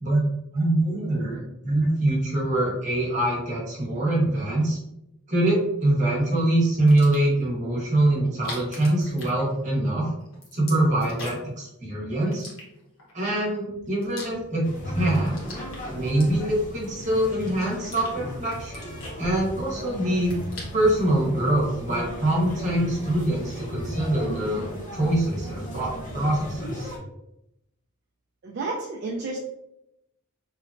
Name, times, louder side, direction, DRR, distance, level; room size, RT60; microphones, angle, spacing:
voice 1, 0.5-4.8 5.3-10.1 10.5-12.5 13.1-14.7 14.9-15.4 15.9-18.9 19.2-20.3 20.7-26.9, right 1 dB, 35° right, -5 dB, 1.0 m, -24 dB
sound 1, 6.8-7.4 8.3-9.9 10.2-11.6 12.3-13.1 13.7-14.7 15.0-16.7 17.2-18.1 18.5-19.8 20.1-21.0, left 2 dB, 65° left, 1.0 m, -42 dB
sound 2, 14.6-27.0, equal, 35° left, 0.6 m, -35 dB
voice 2, 28.4-29.4, right 3 dB, 50° right, -1 dB, 0.3 m, -31 dB
2.9 x 2.1 x 2.5 m, 0.83 s
head